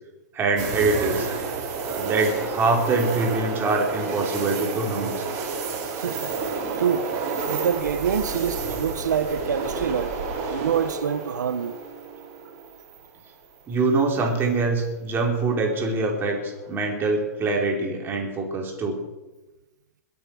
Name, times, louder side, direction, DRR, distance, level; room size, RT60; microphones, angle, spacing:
voice 1, 0.3-1.3 1.8-5.3 13.7-19.0, right 3 dB, 20° right, 4.3 m, -24 dB
sound 1, 0.6-13.6 14.0-14.1 16.5-16.9, right 4 dB, 40° right, 4.5 m, -30 dB
voice 2, 5.9-6.3 6.8-7.1 7.5-10.2 10.5-11.8, right 7 dB, 90° right, 1.1 m, -26 dB
22.0 x 8.8 x 6.4 m
hypercardioid pair, 135°, 9 cm